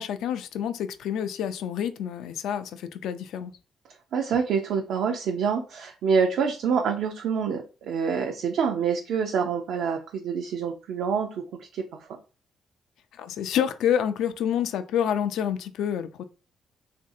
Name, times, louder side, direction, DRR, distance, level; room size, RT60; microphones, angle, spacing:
voice 1, 0.0-3.5 13.1-16.2, left 9 dB, 80° left, 0.3 m, -28 dB
voice 2, 4.1-11.8 12.1-12.2, right 6 dB, 75° right, 0.4 m, -26 dB
3.1 x 2.5 x 2.6 m
cardioid pair, 90°, 0 cm